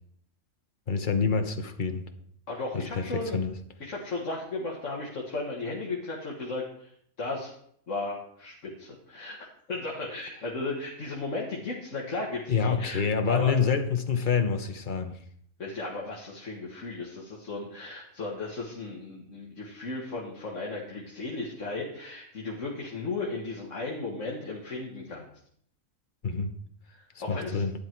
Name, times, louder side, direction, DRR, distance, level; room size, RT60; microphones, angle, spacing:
voice 1, 0.9-2.1 2.9-3.5 12.5-15.2 26.2-26.5 27.3-27.7, left 5 dB, 35° left, 7 dB, 1.1 m, -27 dB
voice 2, 2.5-3.4 3.8-6.9 7.2-7.5 7.9-13.5 15.6-25.3 26.9-27.6, left 3 dB, 55° left, -3 dB, 2.0 m, -35 dB
12.0 x 9.4 x 4.6 m, 0.67 s
omnidirectional pair, 1.5 m